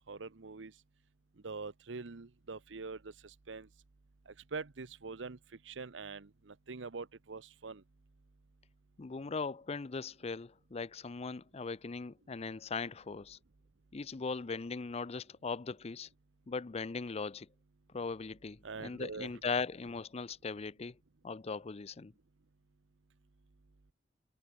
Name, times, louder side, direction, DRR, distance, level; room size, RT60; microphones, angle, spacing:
voice 1, 0.1-0.7 1.4-3.7 4.3-5.4 5.6-7.8 18.6-19.3, right 4 dB, 85° right, 0.9 m, -44 dB
voice 2, 9.0-13.4 13.9-16.1 16.5-17.5 17.9-20.9 21.2-22.1, left 4 dB, 35° left, 0.5 m, -39 dB
head